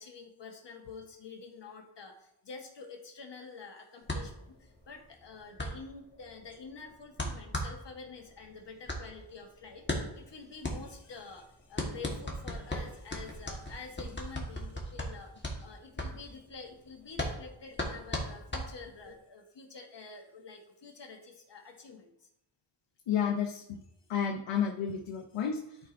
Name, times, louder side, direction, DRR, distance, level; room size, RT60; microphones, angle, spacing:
voice 1, 0.0-22.3 24.0-24.1, left 4 dB, 55° left, 2 dB, 1.3 m, -48 dB
sound 1, 4.0-19.2, left 1 dB, 20° left, 1.3 m, -38 dB
voice 2, 23.1-23.8 24.1-25.8, left 7 dB, 90° left, 1 dB, 0.8 m, -31 dB
11.5 x 4.5 x 2.6 m, 0.81 s
wide cardioid pair, 130°, 50 cm